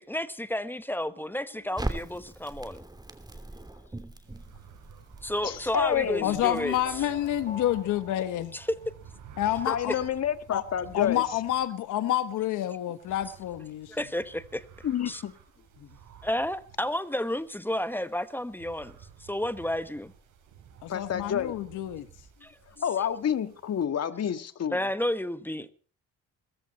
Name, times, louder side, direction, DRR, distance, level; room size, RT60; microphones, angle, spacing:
voice 1, 0.0-2.8 5.2-7.1 8.5-8.7 9.7-9.8 13.9-14.6 15.1-15.2 16.2-18.9 19.2-20.1 22.4-22.5 24.7-25.7, left 1 dB, 5° left, 1.2 m, -31 dB
Crackle, 1.8-7.9, right 2 dB, 15° right, 2.8 m, -41 dB
sound 1, 4.2-23.9, right 8 dB, 85° right, 5.8 m, -52 dB
voice 2, 5.4-6.4 9.6-11.3 14.8-15.3 15.8-15.9 20.9-21.5 22.8-24.8, left 9 dB, 55° left, 1.7 m, -29 dB
voice 3, 6.2-8.5 9.4-9.9 10.5-10.6 10.9-13.9 20.8-22.1, left 12 dB, 90° left, 1.3 m, -28 dB
sound 2, 6.4-9.4, left 2 dB, 25° left, 3.9 m, -47 dB
21.5 x 14.5 x 4.2 m
cardioid pair, 90°, 30 cm